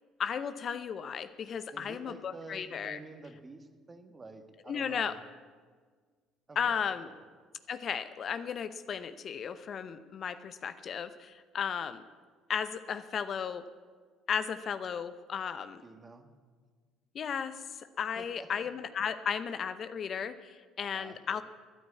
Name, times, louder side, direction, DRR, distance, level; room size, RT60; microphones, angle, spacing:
voice 1, 0.2-3.0 4.7-5.1 6.6-7.1 7.7-12.0 12.5-13.6 14.3-15.8 17.1-17.6 18.0-21.4, left 7 dB, 50° left, 12 dB, 0.7 m, -35 dB
voice 2, 1.7-5.2 6.5-7.3 15.8-16.3 18.2-18.7 20.9-21.4, right 3 dB, 25° right, 8 dB, 1.7 m, -49 dB
13.5 x 9.5 x 8.5 m, 1.5 s
hypercardioid pair, 70°, 0 cm